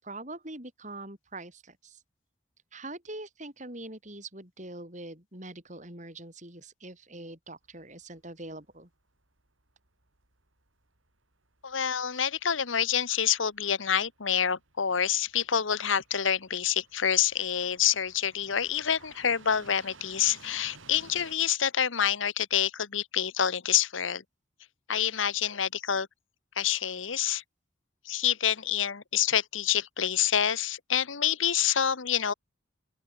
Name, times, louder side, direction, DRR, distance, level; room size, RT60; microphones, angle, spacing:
voice 1, 0.0-2.0 2.7-8.9, right 2 dB, 40° right, 7.2 m, -43 dB
sound 1, 7.6-21.4, right 4 dB, 85° right, 6.8 m, -57 dB
voice 2, 11.6-24.2 24.9-26.1 26.6-27.4 28.0-32.3, left 9 dB, 80° left, 1.1 m, -27 dB
open air
head